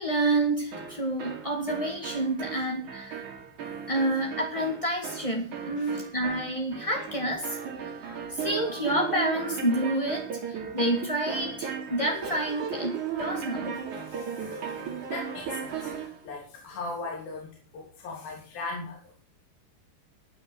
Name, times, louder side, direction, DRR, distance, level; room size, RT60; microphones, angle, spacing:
voice 1, 0.0-3.3 3.9-7.6 8.3-13.8, right 1 dB, 20° left, 1 dB, 1.0 m, -29 dB
sound 1, 0.7-16.2, right 7 dB, 55° right, 4.1 m, -36 dB
voice 2, 14.1-14.5 15.1-15.9 16.2-19.0, left 3 dB, 80° left, -1 dB, 5.1 m, -38 dB
15.0 x 9.7 x 6.3 m, 0.41 s
omnidirectional pair, 4.1 m